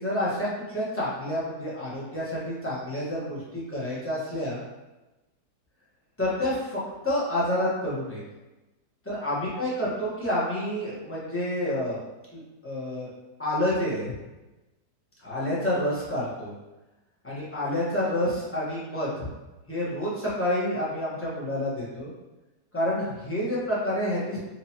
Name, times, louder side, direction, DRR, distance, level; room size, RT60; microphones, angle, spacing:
voice 1, 0.0-4.6 6.2-8.2 9.0-12.0 12.3-13.1 13.4-14.1 15.2-16.5 17.2-19.3 19.7-22.1 22.7-24.4, left 1 dB, 10° left, -9 dB, 0.9 m, -29 dB
4.3 x 2.7 x 2.8 m, 1.1 s
omnidirectional pair, 1.8 m